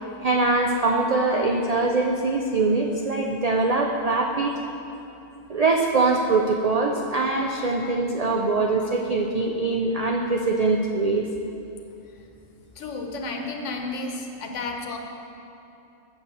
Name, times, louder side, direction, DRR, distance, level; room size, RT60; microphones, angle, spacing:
voice 1, 0.2-4.5 5.5-11.3, right 3 dB, 60° right, 1 dB, 0.4 m, -23 dB
voice 2, 12.8-15.0, left 3 dB, 70° left, 2 dB, 1.2 m, -32 dB
7.3 x 6.9 x 6.8 m, 2.8 s
omnidirectional pair, 1.3 m